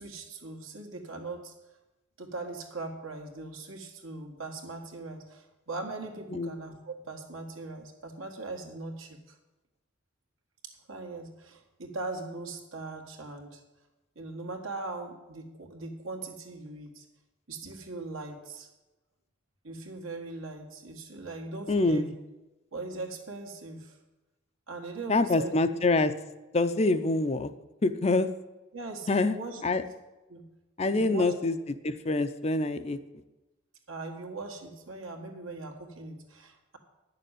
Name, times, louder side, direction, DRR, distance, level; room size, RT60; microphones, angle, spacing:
voice 1, 0.0-1.5 2.2-9.4 10.6-13.6 14.2-17.1 17.5-18.7 19.6-22.1 22.7-24.0 24.7-25.5 28.7-29.6 30.3-30.5 30.8-31.3 33.9-36.8, right 3 dB, 75° right, 3 dB, 1.9 m, -40 dB
voice 2, 21.7-22.1 25.1-26.1 26.5-27.5 27.8-28.3 29.1-29.4 29.6-29.8 30.8-33.0, left 2 dB, 30° left, 10 dB, 0.5 m, -25 dB
10.0 x 6.8 x 9.0 m, 1.1 s
head